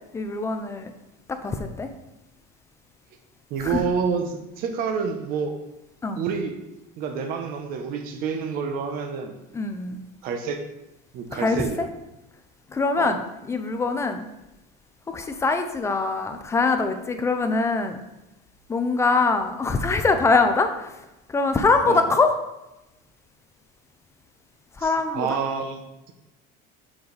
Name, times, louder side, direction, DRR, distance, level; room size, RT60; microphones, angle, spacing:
voice 1, 0.1-0.9 1.3-1.9 3.6-3.8 6.0-6.2 9.5-10.0 11.3-11.9 12.7-13.2 13.5-14.3 15.1-18.0 18.7-20.9 21.3-22.3 24.8-25.4, left 3 dB, 15° left, 7 dB, 0.5 m, -23 dB
voice 2, 3.5-5.5 6.2-6.5 7.0-9.3 10.2-10.6 11.1-11.8 13.0-13.2 21.9-22.1 24.8-26.1, right 6 dB, 45° right, 5 dB, 0.8 m, -28 dB
7.1 x 4.9 x 4.0 m, 0.94 s
cardioid pair, 160°, 20 cm